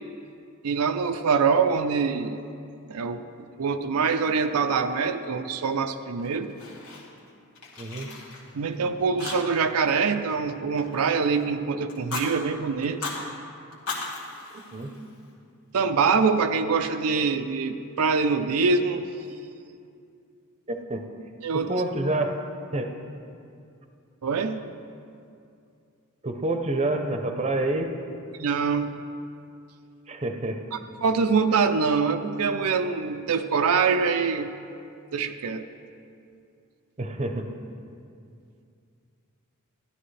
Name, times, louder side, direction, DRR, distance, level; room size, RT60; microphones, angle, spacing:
voice 1, 0.6-2.4 2.9-3.2 3.6-6.5 8.5-13.0 15.7-19.1 21.4-21.7 24.2-24.6 28.4-29.0 30.7-34.6 35.1-35.6, right 5 dB, 90° right, 8 dB, 0.5 m, -24 dB
Fire, 6.2-7.3 7.6-8.8 9.2-9.8 10.0-11.4 11.9-12.3 12.8-13.2 13.7-15.3, left 4 dB, 85° left, 2.0 m, -37 dB
voice 2, 7.8-8.1 14.5-14.9 20.7-21.0 21.5-22.3 22.7-22.9 26.2-27.9 30.1-30.6 37.0-37.5, right 2 dB, 30° right, 5 dB, 0.7 m, -28 dB
12.5 x 12.5 x 3.3 m, 2.5 s
head